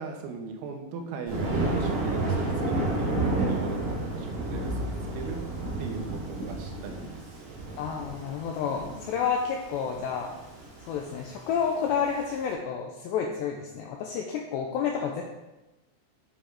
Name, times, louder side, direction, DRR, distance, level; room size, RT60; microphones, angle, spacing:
voice 1, 0.0-5.4 5.8-7.9, right 4 dB, 90° right, 3 dB, 3.9 m, -39 dB
Thunder, 1.3-12.4, right 2 dB, 40° right, 3.1 m, -31 dB
voice 2, 7.8-10.3 10.9-15.2, left 7 dB, 90° left, 1 dB, 2.5 m, -30 dB
10.0 x 6.5 x 4.8 m, 1.0 s
omnidirectional pair, 5.9 m